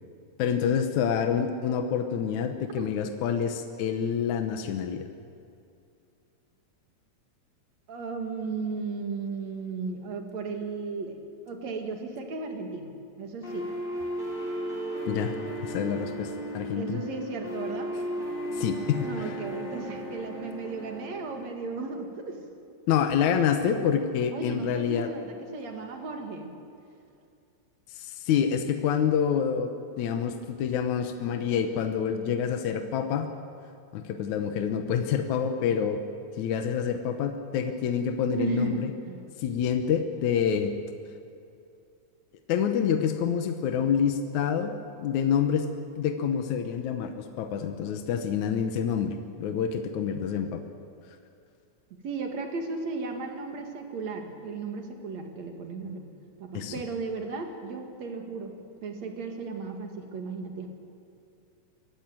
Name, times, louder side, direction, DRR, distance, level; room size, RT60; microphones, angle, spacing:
voice 1, 0.4-5.0 15.0-15.3 15.6-17.0 18.5-19.3 22.9-25.1 27.9-29.7 30.0-33.3 33.9-36.0 36.4-38.9 39.4-40.7 42.5-50.6 56.5-56.7, left 7 dB, 75° left, 6 dB, 2.4 m, -27 dB
voice 2, 7.9-11.2 11.4-12.9 13.2-13.7 16.8-17.9 19.0-22.5 24.3-26.5 38.3-39.2 52.0-56.1 56.4-58.6 58.8-60.7, right 4 dB, 65° right, 3 dB, 3.2 m, -35 dB
sound 1, 13.4-21.4, equal, 15° left, 5.2 m, -35 dB
23.0 x 15.0 x 9.1 m, 2.5 s
omnidirectional pair, 3.4 m